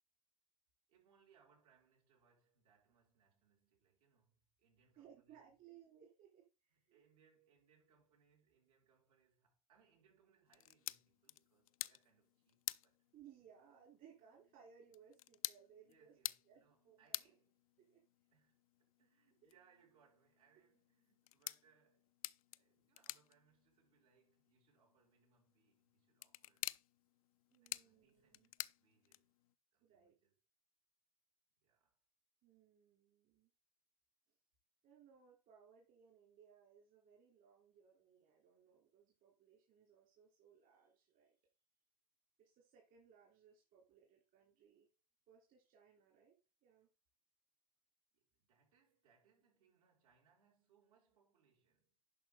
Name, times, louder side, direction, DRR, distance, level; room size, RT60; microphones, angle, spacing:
voice 1, 0.9-5.5 6.7-13.1 15.8-17.6 18.3-22.1 22.5-26.8 27.6-29.4 29.7-30.4 31.6-32.0 48.1-52.0, right 6 dB, 75° right, 6.1 m, -75 dB
voice 2, 5.0-7.0 13.1-16.2 16.5-17.2 17.8-18.0 19.4-19.5 27.5-28.5 29.8-30.2 32.4-33.5 34.8-41.4 42.4-44.9 45.3-46.9, right 8 dB, 50° right, 3.5 m, -65 dB
sound 1, 10.5-29.5, left 16 dB, 75° left, 0.5 m, -51 dB
11.0 x 5.8 x 3.8 m
hypercardioid pair, 90°, 18 cm